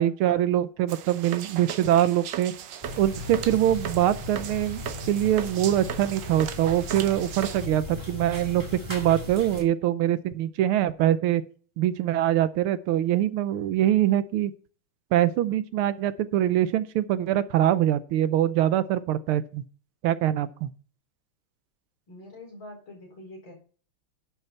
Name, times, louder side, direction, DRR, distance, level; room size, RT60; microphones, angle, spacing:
voice 1, 0.0-2.5 3.0-8.6 8.9-11.4 11.8-14.5 15.1-19.6 20.0-20.7, right 12 dB, 90° right, 1.6 m, -23 dB
sound 1, 0.9-7.7, right 9 dB, 65° right, 1.4 m, -38 dB
sound 2, 2.8-9.6, left 2 dB, 15° right, 1.8 m, -37 dB
voice 2, 22.1-23.5, left 1 dB, 65° left, 5.4 m, -44 dB
11.0 x 5.8 x 5.7 m
omnidirectional pair, 2.4 m